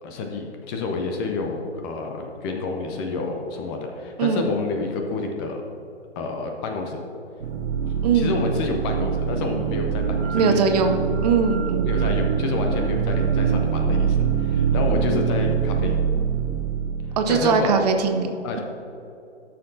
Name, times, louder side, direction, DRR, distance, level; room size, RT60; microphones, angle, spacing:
voice 1, 0.0-5.6 6.2-7.0 7.8-10.9 11.8-16.0 17.3-17.8 18.4-18.6, left 3 dB, 20° left, 3 dB, 0.6 m, -29 dB
voice 2, 4.2-4.5 8.0-8.4 10.3-12.1 17.2-18.3, right 5 dB, 35° right, 6 dB, 0.7 m, -21 dB
sound 1, 7.4-17.2, right 6 dB, 85° right, 0.8 m, -24 dB
13.0 x 6.7 x 2.7 m, 2.8 s
figure-of-eight pair, 125°, 34 cm